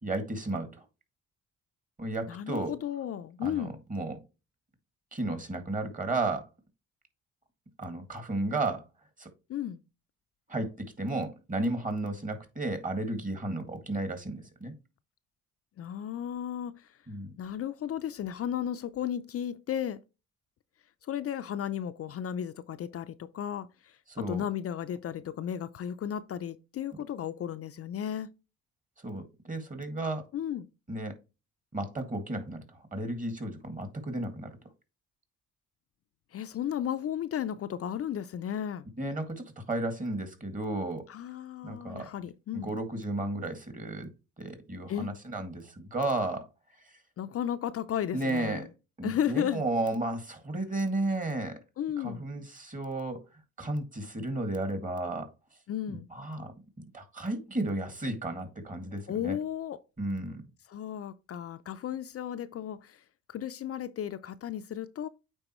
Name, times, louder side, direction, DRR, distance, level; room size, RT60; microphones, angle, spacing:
voice 1, 0.0-0.8 2.0-2.7 3.4-4.2 5.1-6.5 7.8-8.9 9.2-9.3 10.5-14.7 17.1-17.3 24.1-24.4 29.0-30.3 30.9-31.2 31.7-34.5 39.0-41.0 41.6-42.1 42.5-44.1 44.4-46.5 46.8-46.9 48.1-48.7 49.0-51.6 52.0-53.2 53.6-55.3 55.9-56.5 56.9-59.4 60.0-60.4, right 2 dB, 25° right, 2.0 m, -33 dB
voice 2, 2.3-3.8 9.5-9.8 15.8-16.9 17.4-20.0 21.0-28.3 30.3-30.7 36.3-38.9 41.1-42.7 44.9-45.1 47.2-48.7 49.0-49.6 51.8-52.2 55.7-56.1 59.1-59.8 60.7-65.1, left 10 dB, 50° left, 0.5 m, -34 dB
8.9 x 3.9 x 3.0 m
cardioid pair, 90°, 30 cm